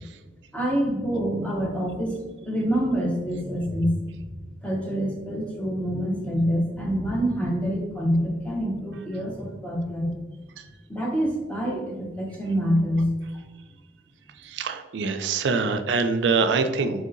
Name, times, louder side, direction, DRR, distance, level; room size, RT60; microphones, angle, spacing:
voice 1, 0.5-4.0 4.6-10.1 10.9-13.1, equal, 10° left, -2 dB, 0.8 m, -26 dB
voice 2, 14.4-17.1, right 4 dB, 85° right, 8 dB, 0.4 m, -24 dB
3.2 x 2.7 x 3.8 m, 1.2 s
head